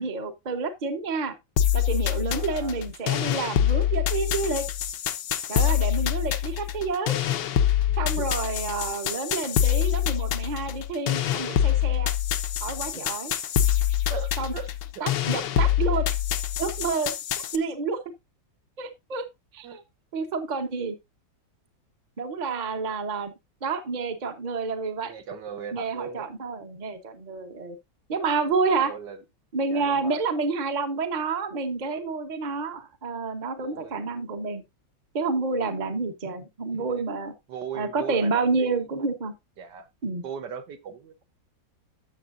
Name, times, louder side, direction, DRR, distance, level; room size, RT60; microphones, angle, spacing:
voice 1, 0.0-1.3 1.7-4.7 5.5-7.1 8.0-12.1 12.6-13.3 14.4-14.5 15.0-16.1 16.6-17.2 17.5-18.0 18.8-19.2 19.5-19.8 20.1-21.0 22.2-23.3 23.6-25.1 25.7-27.8 28.1-28.9 29.5-34.6 35.1-37.3 37.7-39.3 40.0-40.2, right 4 dB, 30° right, 0.9 m, -29 dB
sound 1, 1.6-17.6, left 11 dB, 70° left, 1.3 m, -25 dB
voice 2, 2.3-2.8 7.9-8.3 12.9-13.0 14.1-14.7 15.0-15.1 19.6-19.8 25.0-26.3 28.8-29.2 29.7-30.2 33.6-34.0 36.8-37.0 37.5-38.9 39.6-39.9 40.2-41.2, right 7 dB, 65° right, 1.5 m, -39 dB
12.0 x 7.1 x 2.6 m
omnidirectional pair, 2.1 m